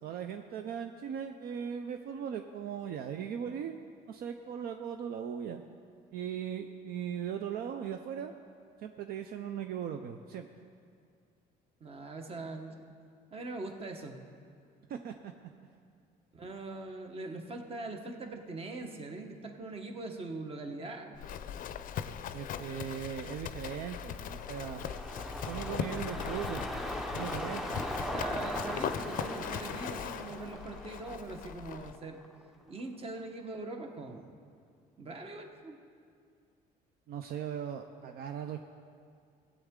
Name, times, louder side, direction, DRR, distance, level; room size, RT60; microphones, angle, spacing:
voice 1, 0.0-3.8 4.1-5.6 6.1-8.3 8.8-10.5 14.9-15.3 22.3-24.8 25.4-26.8 27.1-27.8 37.1-38.6, right 8 dB, 65° right, 6 dB, 0.5 m, -38 dB
voice 2, 11.8-12.9 13.3-14.3 16.3-21.2 27.7-32.3 32.7-34.3 35.0-35.8, right 2 dB, 35° right, 4 dB, 1.1 m, -42 dB
Livestock farm animals working animals, 21.2-32.0, left 9 dB, 55° left, 0.5 m, -40 dB
sound 1, 24.0-32.4 32.8-32.9, equal, ahead, 0.5 m, -40 dB
16.0 x 8.2 x 3.7 m, 2.3 s
cardioid pair, 110°, 17 cm